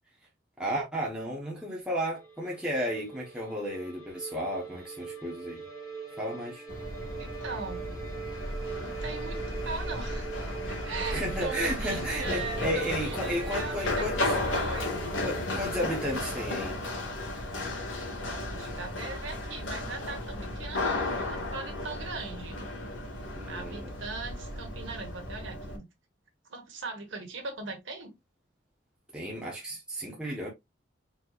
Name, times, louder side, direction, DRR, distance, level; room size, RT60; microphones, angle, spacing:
voice 1, 0.6-5.6 6.2-6.6 11.0-14.4 15.2-16.8 23.3-23.9 29.1-30.5, equal, 5° right, 1.1 m, -33 dB
sound 1, 2.1-16.5, right 5 dB, 20° left, 2.4 m, -42 dB
Run, 6.7-25.8, left 2 dB, 75° left, 1.8 m, -34 dB
voice 2, 7.2-7.9 8.7-10.3 10.7-14.0 14.5-14.9 18.2-22.6 23.5-25.8 26.5-28.1, right 3 dB, 75° right, 1.6 m, -39 dB
4.3 x 4.2 x 2.5 m
head